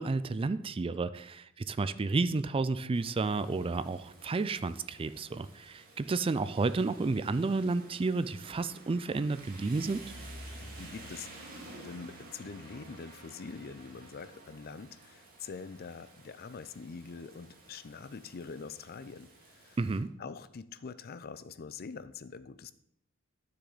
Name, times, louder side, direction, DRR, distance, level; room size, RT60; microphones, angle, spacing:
voice 1, 0.0-10.0 19.8-20.1, right 3 dB, 25° right, 13 dB, 0.3 m, -31 dB
Rain, 2.9-20.0, right 1 dB, 45° right, 2.2 m, -51 dB
voice 2, 10.6-19.8 20.2-22.7, left 5 dB, 45° left, 15 dB, 0.5 m, -45 dB
12.5 x 6.8 x 4.0 m, 0.72 s
head